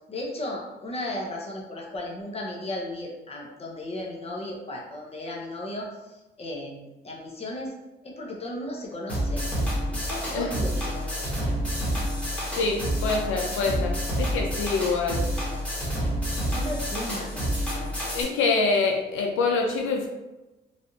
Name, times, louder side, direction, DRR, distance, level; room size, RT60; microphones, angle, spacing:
voice 1, 0.1-7.7 8.0-9.5 9.9-11.6 11.9-12.2 16.5-18.0, left 1 dB, 30° left, -1 dB, 0.8 m, -35 dB
sound 1, 9.1-18.2, equal, 5° left, 1.3 m, -28 dB
voice 2, 12.6-15.3 18.1-20.1, left 4 dB, 85° left, 1 dB, 0.5 m, -25 dB
3.3 x 2.5 x 2.7 m, 1.0 s
cardioid pair, 90°, 20 cm